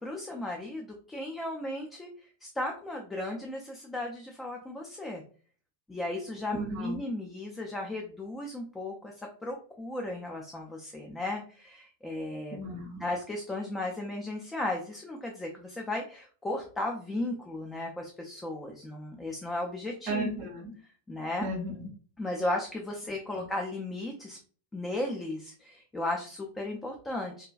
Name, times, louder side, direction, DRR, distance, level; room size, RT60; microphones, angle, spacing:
voice 1, 0.0-5.2 5.9-9.1 9.4-12.6 13.0-20.3 21.1-21.5 22.2-24.4 24.7-27.5, left 1 dB, 10° left, 1 dB, 0.4 m, -35 dB
voice 2, 6.5-7.0 12.5-13.0 20.1-20.7 21.4-21.9, right 1 dB, 45° right, 2 dB, 0.5 m, -34 dB
2.4 x 2.1 x 2.3 m, 0.43 s
figure-of-eight pair, 90°, 0 cm